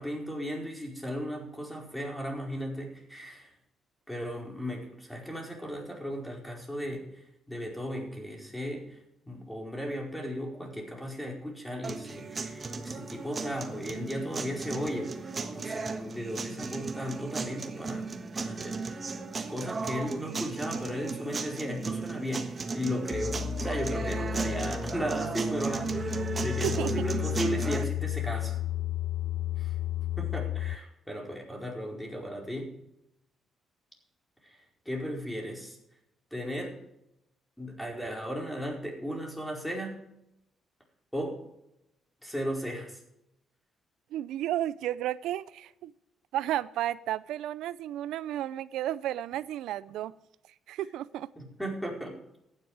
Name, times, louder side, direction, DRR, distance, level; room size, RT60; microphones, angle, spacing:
voice 1, 0.0-3.5 4.1-7.1 7.5-9.0 9.3-28.6 29.6-29.7 30.2-32.7 34.4-34.6 34.8-35.8 36.3-36.8 37.6-40.0 41.1-41.4 42.2-43.0 51.4-52.1, equal, 5° left, 0 dB, 4.7 m, -36 dB
sound 1, 11.8-27.8, right 4 dB, 35° right, 1.3 m, -35 dB
sound 2, 23.1-30.8, left 12 dB, 55° left, 0.5 m, -33 dB
voice 2, 44.1-45.9 46.3-50.1 50.7-51.3, right 12 dB, 85° right, 17 dB, 0.4 m, -32 dB
14.5 x 10.0 x 4.8 m, 0.83 s
cardioid pair, 90°, 0 cm